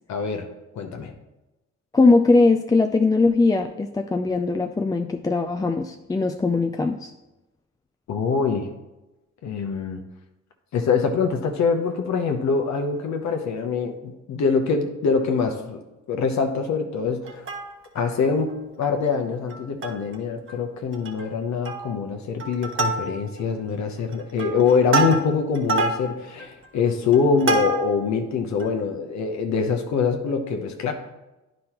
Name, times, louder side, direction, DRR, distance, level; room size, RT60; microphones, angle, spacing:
voice 1, 0.1-0.5 0.7-1.1 8.1-8.7 9.4-10.0 10.7-15.8 16.1-17.4 17.9-30.9, left 5 dB, 65° left, 5 dB, 0.9 m, -24 dB
voice 2, 1.9-7.1, left 3 dB, 15° left, 4 dB, 0.4 m, -20 dB
Plucked string instrument, 17.2-18.1 18.5-18.6 18.8-19.0 19.5-20.2 20.5-20.6 20.9-21.3 21.6-22.0 22.4-23.4 24.0-28.1 28.6-28.7, right 3 dB, 45° right, 1.1 m, -27 dB
9.6 x 5.2 x 3.0 m, 1.0 s
cardioid pair, 90°, 30 cm